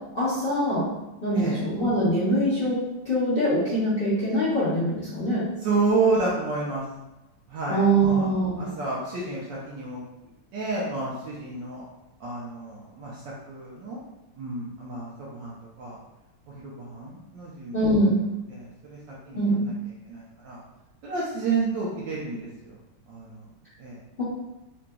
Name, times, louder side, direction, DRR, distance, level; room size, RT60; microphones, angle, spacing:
voice 1, 0.1-0.9 1.2-2.8 3.0-5.5 7.7-8.6 17.7-18.2 19.3-19.6, right 1 dB, 40° left, -13 dB, 0.8 m, -23 dB
voice 2, 5.6-6.8 7.5-8.3 8.6-10.0 10.5-11.8 12.2-13.2 13.5-14.0 14.4-16.0 16.6-17.7 18.5-19.0 19.3-19.7 20.1-20.6 21.0-22.7 23.1-23.4 23.8-24.0, right 3 dB, 70° right, -6 dB, 1.1 m, -30 dB
3.8 x 2.5 x 2.2 m, 0.98 s
omnidirectional pair, 2.4 m